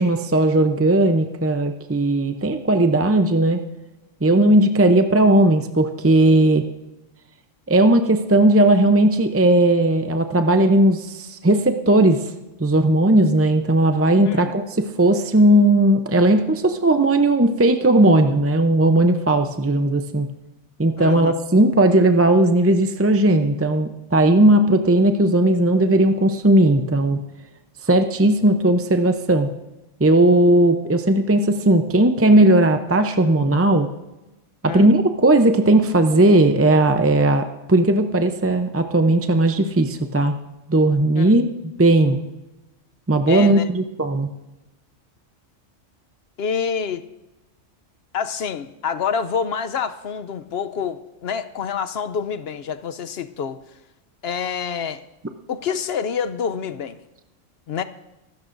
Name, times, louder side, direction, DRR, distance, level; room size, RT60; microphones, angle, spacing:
voice 1, 0.0-3.6 4.2-6.6 7.7-12.3 12.6-20.3 20.8-27.2 27.9-29.5 30.0-33.9 34.6-40.3 40.7-41.5 41.8-42.2 43.1-44.3, right 1 dB, 20° right, 7 dB, 0.4 m, -17 dB
voice 2, 21.0-21.3 34.7-34.9 41.2-41.3 43.3-43.7 46.4-47.1 48.1-53.6 54.2-55.0 55.5-57.0 57.7-57.8, left 6 dB, 60° left, 12 dB, 0.8 m, -27 dB
24.5 x 13.0 x 2.6 m, 1.0 s
omnidirectional pair, 1.3 m